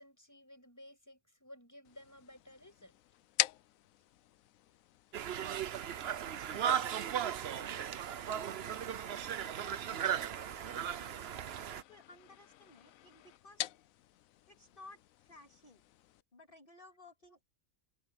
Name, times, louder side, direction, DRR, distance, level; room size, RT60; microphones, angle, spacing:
voice 1, 0.0-3.0 11.2-11.3, left 1 dB, 10° left, 7.0 m, -56 dB
sound 1, 1.8-16.2, left 14 dB, 85° left, 1.0 m, -45 dB
Conversation, 5.1-11.8, right 9 dB, 55° right, 0.9 m, -36 dB
voice 2, 5.2-7.1 7.5-7.7 8.2-9.0 9.5-11.3 11.7-13.7 14.5-15.8 16.3-17.4, left 2 dB, 40° left, 2.6 m, -59 dB
open air
omnidirectional pair, 1.4 m